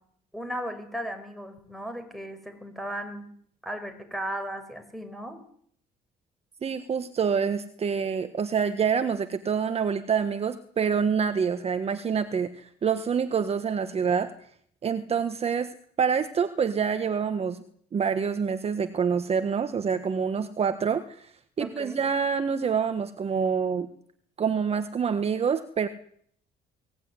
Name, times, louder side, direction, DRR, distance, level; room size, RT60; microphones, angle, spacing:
voice 1, 0.3-3.3 3.6-5.4 21.6-22.0, equal, ahead, 8 dB, 6.0 m, -36 dB
voice 2, 6.6-14.3 14.8-15.7 16.0-17.6 17.9-23.9 24.4-25.9, right 6 dB, 35° right, 9 dB, 1.5 m, -26 dB
22.5 x 18.5 x 9.9 m, 0.64 s
cardioid pair, 110°, 17 cm